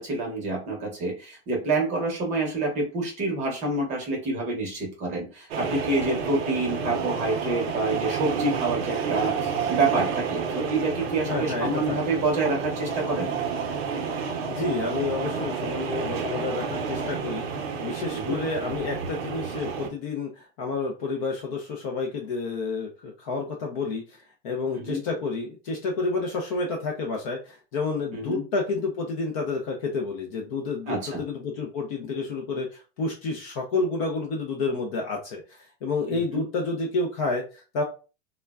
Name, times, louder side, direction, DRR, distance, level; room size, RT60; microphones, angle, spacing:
voice 1, 0.0-13.3 18.1-18.4 24.8-25.0 28.1-28.4 30.9-31.2 36.1-36.4, right 2 dB, 20° right, -1 dB, 0.7 m, -27 dB
sound 1, 5.5-19.9, right 6 dB, 60° right, 0.6 m, -30 dB
voice 2, 11.3-12.0 14.5-17.5 17.8-37.8, left 3 dB, 30° left, 1 dB, 0.4 m, -30 dB
3.3 x 2.1 x 2.3 m, 0.34 s
supercardioid pair, 160°, 36 cm